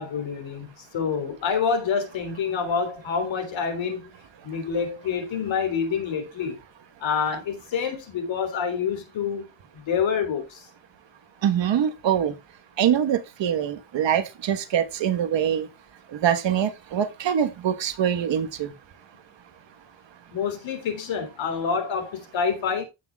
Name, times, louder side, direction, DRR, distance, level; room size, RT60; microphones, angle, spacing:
voice 1, 0.0-4.1 4.4-6.5 7.0-9.5 9.7-10.6 20.3-22.8, left 6 dB, 80° left, 3.3 m, -27 dB
voice 2, 11.4-12.3 12.8-15.7 16.2-18.7, right 9 dB, 70° right, 1.4 m, -24 dB
15.0 x 6.2 x 2.3 m
wide cardioid pair, 175°, 45 cm